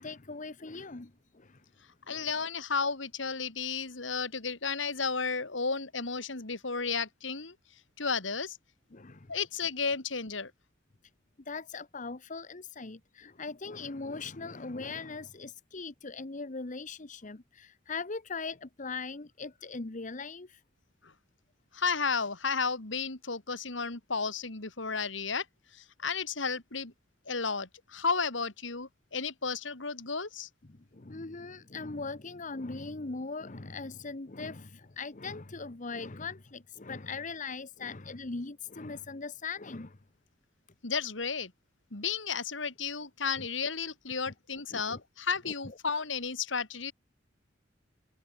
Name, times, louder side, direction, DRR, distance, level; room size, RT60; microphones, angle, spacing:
voice 1, 0.0-1.6 2.1-2.3 8.9-9.3 11.5-20.6 30.7-40.0 43.4-43.5 44.7-45.0 45.4-45.5, left 4 dB, 45° left, 1.1 m, -40 dB
voice 2, 2.1-7.6 8.0-8.6 9.3-10.5 21.0-21.1 21.7-25.5 25.7-26.9 27.2-30.5 40.8-41.5 41.9-46.9, left 5 dB, 80° left, 2.8 m, -33 dB
head